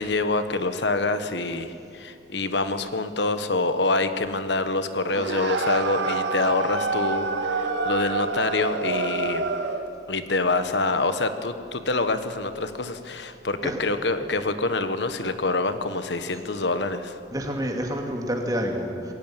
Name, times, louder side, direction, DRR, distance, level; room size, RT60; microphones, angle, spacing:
voice 1, 0.0-9.5 10.1-17.2, left 2 dB, 75° left, 10 dB, 1.3 m, -26 dB
sound 1, 5.1-9.9, right 3 dB, 80° right, 1.9 m, -27 dB
voice 2, 17.3-19.1, equal, 20° right, 2 dB, 2.6 m, -28 dB
20.5 x 18.0 x 9.1 m, 2.7 s
head